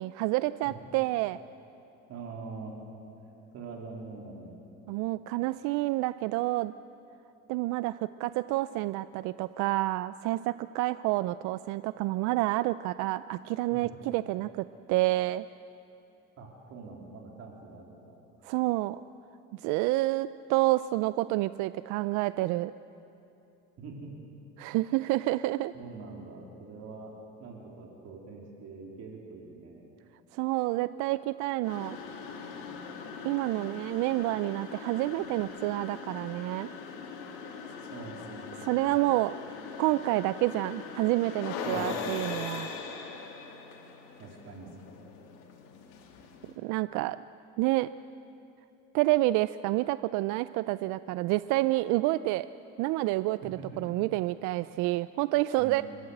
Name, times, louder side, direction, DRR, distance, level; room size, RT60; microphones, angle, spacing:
voice 1, 0.0-1.4 4.9-6.7 7.5-15.5 18.4-19.0 19.5-22.7 24.6-25.7 30.3-32.0 33.2-36.7 38.6-39.3 39.8-42.7 46.6-47.2 47.6-47.9 48.9-52.5 52.8-55.8, right 18 dB, 75° right, 14 dB, 0.5 m, -28 dB
voice 2, 2.1-2.7 3.5-4.5 13.7-14.0 16.4-18.1 23.8-24.1 25.7-27.1 27.4-29.8 37.9-38.4 38.9-39.1 41.6-42.1 44.2-44.7 53.6-53.7 55.6-55.8, right 4 dB, 55° right, -1 dB, 3.4 m, -44 dB
sound 1, 31.6-46.6, left 5 dB, 85° left, 3.0 m, -41 dB
29.0 x 13.0 x 7.9 m, 2.8 s
cardioid pair, 110°, 30 cm